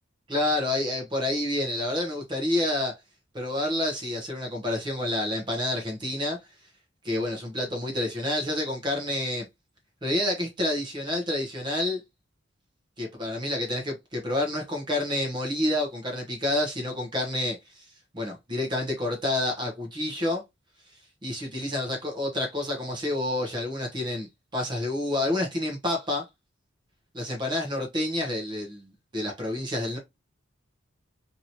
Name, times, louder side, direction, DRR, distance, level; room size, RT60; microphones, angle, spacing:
voice 1, 0.3-2.9 3.3-6.4 7.0-9.5 10.0-12.0 13.0-20.4 21.2-26.3 27.1-30.0, left 1 dB, 25° right, 0.8 m, -29 dB
2.9 x 2.7 x 2.7 m
head